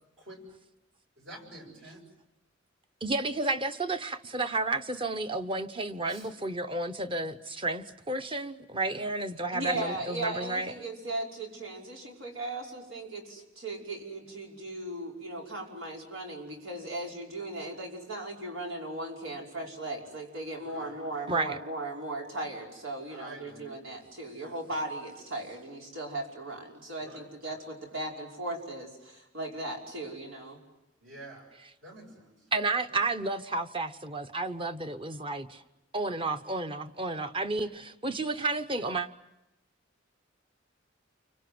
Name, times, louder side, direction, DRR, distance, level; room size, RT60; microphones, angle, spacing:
voice 1, 1.2-2.0 6.1-6.3 8.8-9.1 9.4-9.6 20.6-21.0 23.1-23.7 24.3-24.6 27.0-27.6 31.0-31.5 31.8-32.4 32.9-33.0, right 1 dB, 65° right, 7.5 m, -49 dB
voice 2, 3.0-10.7 21.3-21.6 32.5-35.6 35.9-39.1, right 2 dB, 25° right, 1.0 m, -31 dB
voice 3, 9.5-30.6, right 1 dB, 90° right, 5.6 m, -37 dB
29.5 x 25.0 x 7.8 m
head